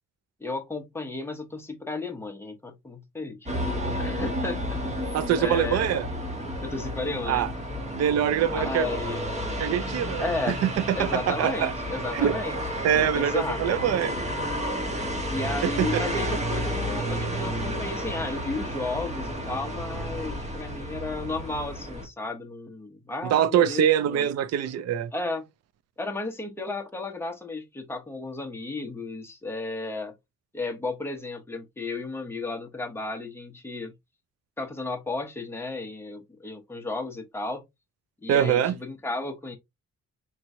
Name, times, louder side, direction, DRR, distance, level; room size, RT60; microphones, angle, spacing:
voice 1, 0.4-3.5 4.0-4.8 5.4-6.0 6.6-7.5 8.5-9.3 10.2-10.6 10.9-12.6 12.9-13.8 15.3-24.3 25.1-25.5 26.0-30.1 30.5-33.9 34.6-37.6 38.2-39.6, left 3 dB, 10° left, 0.9 m, -33 dB
sound 1, 3.5-22.1, equal, 25° right, 1.2 m, -31 dB
voice 2, 5.1-6.1 7.3-7.5 7.9-8.9 9.6-11.7 12.1-12.4 12.8-14.2 15.6-16.0 23.2-25.1 38.3-38.8, right 10 dB, 60° right, 0.5 m, -24 dB
4.4 x 3.0 x 2.6 m
cardioid pair, 125°, 29 cm